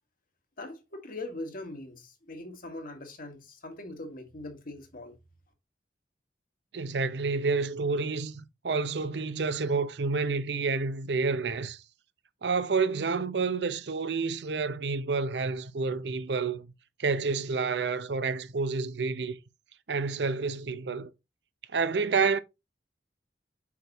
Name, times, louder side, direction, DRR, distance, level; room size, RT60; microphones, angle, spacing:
voice 1, 0.6-5.1, left 2 dB, 55° left, 1.6 m, -41 dB
voice 2, 6.7-11.8 12.4-16.7 17.0-19.4 19.9-21.1 21.7-22.4, right 4 dB, 70° right, 0.6 m, -29 dB
5.9 x 5.8 x 2.9 m
head